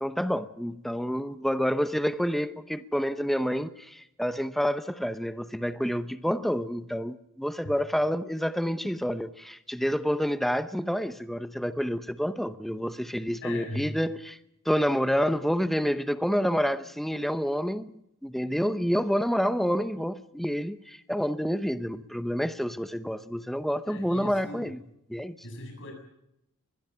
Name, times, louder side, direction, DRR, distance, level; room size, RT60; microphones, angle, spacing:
voice 1, 0.0-14.4 14.7-17.9 18.2-24.8 25.1-25.4, equal, ahead, 0.8 m, -28 dB
voice 2, 13.4-13.9 23.9-24.7 25.4-25.9, left 1 dB, 60° left, 7.6 m, -39 dB
23.5 x 21.0 x 5.7 m
head